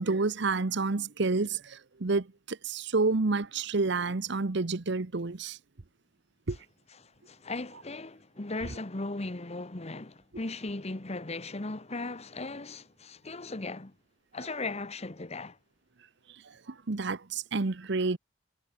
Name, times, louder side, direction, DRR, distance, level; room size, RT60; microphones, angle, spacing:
voice 1, 0.0-5.6 6.5-6.6 16.7-18.2, right 3 dB, 65° right, 0.9 m, -29 dB
voice 2, 7.0-13.9 14.3-15.6, left 2 dB, 35° left, 1.3 m, -37 dB
head